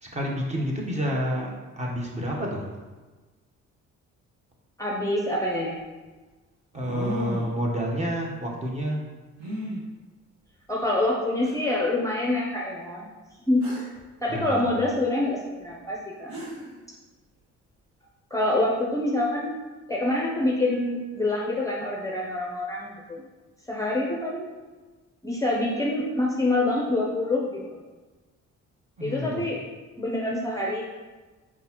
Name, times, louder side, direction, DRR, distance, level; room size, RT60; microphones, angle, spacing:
voice 1, 0.0-1.5 1.8-2.7 6.7-9.0 14.3-14.7 29.0-29.4, equal, 25° right, -2 dB, 1.0 m, -29 dB
voice 2, 4.8-5.8 10.7-13.1 13.4-13.8 14.2-16.4 18.3-19.5 19.9-23.2 23.7-24.5 25.2-27.8 29.0-29.7 30.0-30.8, left 2 dB, 10° left, -3 dB, 0.6 m, -26 dB
sound 1, 6.7-7.6 9.4-9.8 10.8-10.9 11.4-11.5 13.6-14.0 15.9-16.0 16.3-16.8, equal, 65° right, 1.4 m, -35 dB
4.7 x 3.8 x 2.9 m, 1.3 s
cardioid pair, 90°, 30 cm